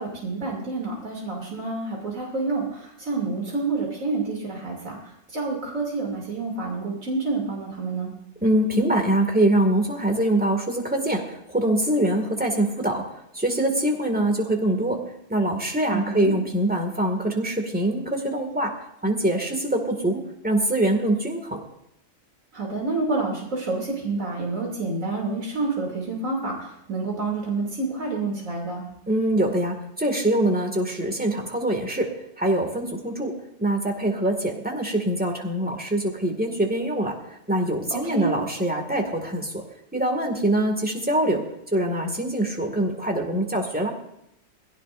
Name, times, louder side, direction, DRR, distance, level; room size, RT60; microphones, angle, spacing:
voice 1, 0.0-8.1 15.9-16.3 22.5-28.8 37.9-38.3, right 3 dB, 80° right, -2 dB, 3.2 m, -28 dB
voice 2, 8.4-13.0 13.3-15.0 15.3-18.7 19.0-21.6 29.1-32.1 32.4-33.3 33.6-37.1 37.5-39.6 39.9-41.4 41.7-43.9, right 1 dB, 5° right, 2 dB, 2.0 m, -24 dB
21.5 x 16.5 x 2.6 m, 0.77 s
omnidirectional pair, 1.4 m